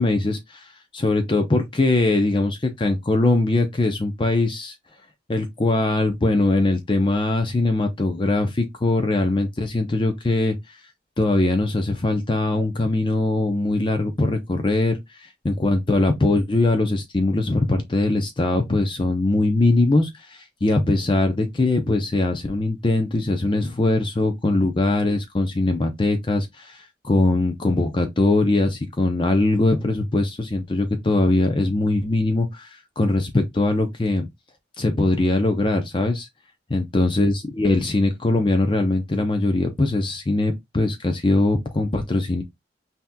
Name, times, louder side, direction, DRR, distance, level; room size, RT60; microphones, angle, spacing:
voice 1, 0.0-4.7 5.3-10.8 11.2-34.3 34.8-36.3 36.7-42.4, left 2 dB, 30° left, 0.5 m, -21 dB
5.7 x 2.8 x 2.2 m
head